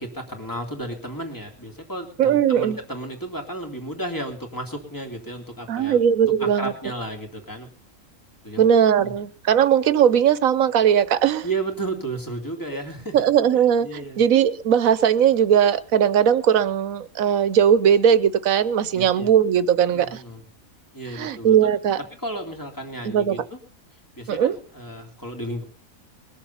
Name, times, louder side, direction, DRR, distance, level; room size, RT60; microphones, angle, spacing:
voice 1, 0.0-6.0 6.4-7.7 8.4-8.7 9.0-9.1 11.4-13.3 13.8-14.2 18.9-19.3 19.9-20.4 20.9-21.6 22.2-23.6 24.2-25.6, right 2 dB, 15° left, 2.6 m, -33 dB
voice 2, 2.2-2.8 5.7-6.7 8.6-11.5 13.1-20.2 21.1-22.0 23.0-23.4 24.3-24.6, right 9 dB, 75° right, 1.3 m, -19 dB
21.5 x 7.2 x 5.5 m
omnidirectional pair, 1.4 m